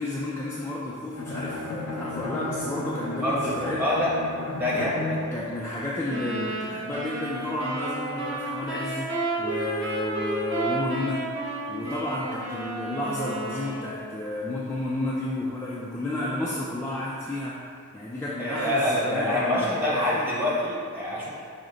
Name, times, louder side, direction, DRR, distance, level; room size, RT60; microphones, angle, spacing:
voice 1, 0.0-3.8 4.7-4.9 5.3-9.1 9.4-11.2 11.7-17.6 17.9-20.2, left 2 dB, 10° left, -7 dB, 0.3 m, -31 dB
Bowed string instrument, 1.2-5.5, left 2 dB, 85° left, 0.5 m, -34 dB
voice 2, 3.2-4.1 4.5-5.2 18.4-21.3, left 1 dB, 10° right, -8 dB, 1.0 m, -26 dB
sound 1, 6.1-14.1, right 2 dB, 55° right, 0.8 m, -32 dB
6.1 x 2.1 x 3.8 m, 2.2 s
head